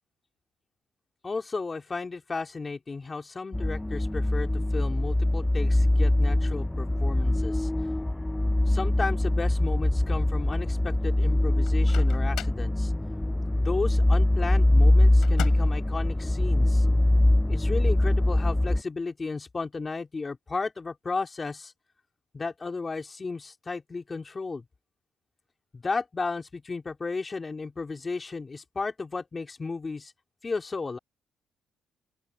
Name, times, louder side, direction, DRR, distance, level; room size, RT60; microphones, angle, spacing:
voice 1, 1.2-7.7 8.7-12.9 13.6-16.8 17.5-21.7 22.3-24.6 25.7-30.1 30.4-31.0, left 4 dB, 30° left, 3.3 m, -34 dB
sound 1, 3.5-18.8, left 1 dB, 10° left, 0.4 m, -23 dB
Microwave oven, 11.6-12.7 15.2-15.8, left 12 dB, 80° left, 5.0 m, -38 dB
open air
cardioid pair, 90°, 0 cm